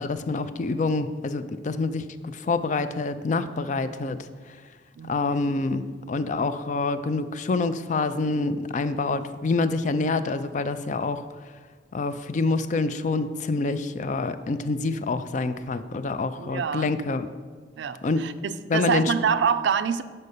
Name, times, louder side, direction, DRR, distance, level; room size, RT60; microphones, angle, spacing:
voice 1, 0.0-4.3 5.0-11.3 11.9-17.3 18.0-18.3 18.7-19.1, left 3 dB, 45° left, 12 dB, 0.4 m, -26 dB
voice 2, 5.0-5.4 16.4-17.0 17.8-20.0, right 6 dB, 85° right, 13 dB, 0.4 m, -26 dB
5.5 x 5.4 x 6.6 m, 1.5 s
head